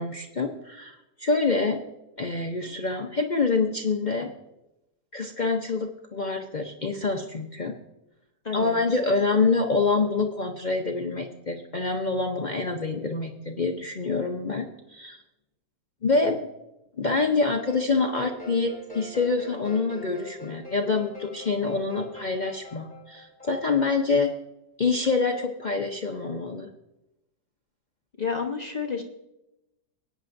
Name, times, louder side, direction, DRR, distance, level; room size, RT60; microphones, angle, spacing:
voice 1, 0.0-1.8 2.2-4.3 5.1-7.7 8.5-15.2 16.0-16.4 17.0-24.3 24.8-26.7, left 4 dB, 50° left, 2 dB, 0.5 m, -26 dB
voice 2, 8.4-8.8 28.2-29.0, left 5 dB, 30° left, 1 dB, 0.9 m, -30 dB
sound 1, 17.6-24.0, left 1 dB, 5° left, 3.6 m, -43 dB
19.0 x 8.8 x 2.6 m, 0.91 s
omnidirectional pair, 1.7 m